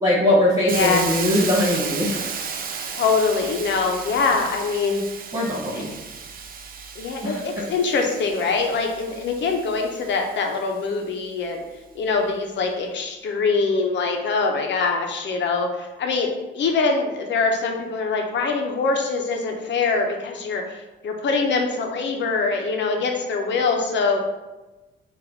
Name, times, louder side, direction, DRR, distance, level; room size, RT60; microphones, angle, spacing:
voice 1, 0.0-2.3 5.3-5.9 7.2-7.4, left 1 dB, 15° right, -6 dB, 0.9 m, -21 dB
voice 2, 0.7-1.1 3.0-5.0 5.7-5.9 7.0-11.6 11.9-20.7 21.0-24.2, left 4 dB, 65° left, 2 dB, 0.8 m, -23 dB
Hiss, 0.7-10.6, right 6 dB, 45° right, 0.5 m, -34 dB
3.9 x 2.6 x 4.5 m, 1.1 s
cardioid pair, 90°, 20 cm